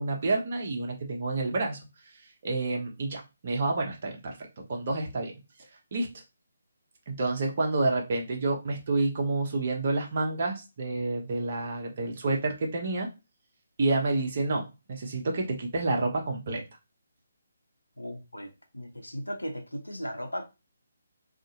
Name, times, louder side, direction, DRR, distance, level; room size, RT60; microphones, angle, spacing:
voice 1, 0.0-1.8 2.4-5.3 5.9-6.1 7.1-13.1 13.8-16.6, right 2 dB, 40° right, 0.9 m, -29 dB
voice 2, 18.0-20.4, equal, 80° left, 0.7 m, -37 dB
2.6 x 2.4 x 2.7 m
figure-of-eight pair, 145°, 0 cm